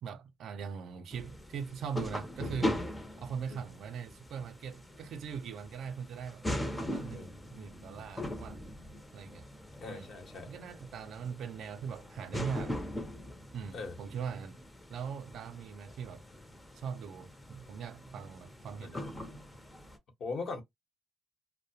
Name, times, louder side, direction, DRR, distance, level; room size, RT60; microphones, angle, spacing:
voice 1, 0.0-2.8 3.2-6.5 6.7-8.7 9.1-9.5 9.9-10.1 10.5-12.8 13.5-14.6 14.9-16.3 16.7-19.0, right 7 dB, 70° right, 0.4 m, -41 dB
sound 1, 1.1-20.0, left 1 dB, 15° left, 0.6 m, -41 dB
voice 2, 9.8-10.6 13.7-14.0 18.8-19.1 20.2-20.6, left 4 dB, 65° left, 1.0 m, -41 dB
2.3 x 2.1 x 2.7 m
cardioid pair, 90°, 0 cm